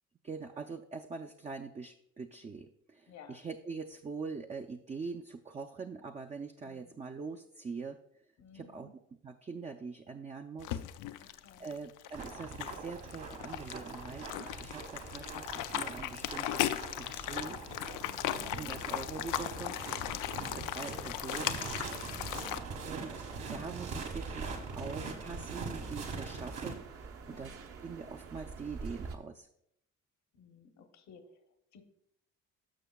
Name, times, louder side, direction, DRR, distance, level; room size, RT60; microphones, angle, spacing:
voice 1, 0.2-8.0 8.5-8.9 9.2-10.8 11.1-17.6 18.4-19.8 20.5-21.7 22.8-23.1 23.5-27.6 27.8-29.5, right 5 dB, 25° right, 5 dB, 0.4 m, -43 dB
voice 2, 3.1-3.4 6.6-7.0 8.4-8.9 11.2-11.8 18.0-18.6 20.3-20.8 22.1-22.6 27.3-27.7 30.3-31.4 31.7-31.8, left 5 dB, 65° left, 6 dB, 0.9 m, -56 dB
sound 1, 10.6-22.6, left 12 dB, 90° left, 0.5 m, -37 dB
sound 2, 12.1-26.7, right 4 dB, 80° right, 1.7 m, -43 dB
sound 3, 21.6-29.2, right 4 dB, 50° right, 0.8 m, -46 dB
12.5 x 6.2 x 2.3 m, 0.76 s
cardioid pair, 90°, 30 cm